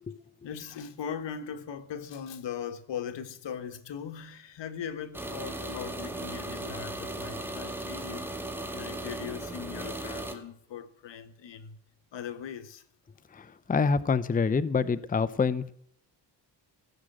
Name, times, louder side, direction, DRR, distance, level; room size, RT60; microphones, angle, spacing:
voice 1, 0.4-8.4 8.7-11.8 12.1-12.8, left 8 dB, 80° left, 1.3 m, -39 dB
sound 1, 5.1-10.4, right 1 dB, 5° right, 2.1 m, -37 dB
voice 2, 13.3-15.7, left 5 dB, 20° left, 0.6 m, -26 dB
16.0 x 6.4 x 7.8 m
cardioid pair, 75°, 43 cm